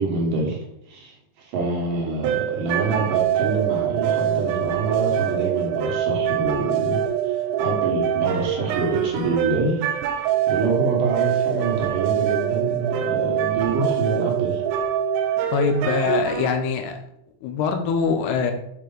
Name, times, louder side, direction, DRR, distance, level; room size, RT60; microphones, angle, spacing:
voice 1, 0.0-9.9 10.5-14.6, right 3 dB, 60° right, -1 dB, 2.4 m, -26 dB
sound 1, 2.2-16.5, right 10 dB, 85° right, 3.0 m, -24 dB
voice 2, 15.5-17.0 17.4-18.5, left 5 dB, 80° left, 5 dB, 2.5 m, -23 dB
7.9 x 4.8 x 3.9 m, 0.82 s
omnidirectional pair, 5.3 m